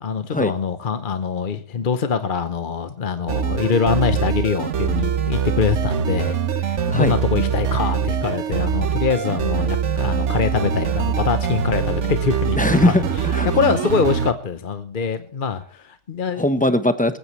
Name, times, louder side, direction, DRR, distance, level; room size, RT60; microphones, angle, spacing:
voice 1, 0.0-13.0 13.4-16.5, left 6 dB, 45° left, 9 dB, 1.0 m, -24 dB
sound 1, 3.3-14.3, right 7 dB, 75° right, 1.2 m, -23 dB
voice 2, 12.6-13.5 16.4-17.2, left 1 dB, 5° left, 9 dB, 1.0 m, -20 dB
20.0 x 15.5 x 3.2 m, 0.42 s
omnidirectional pair, 1.3 m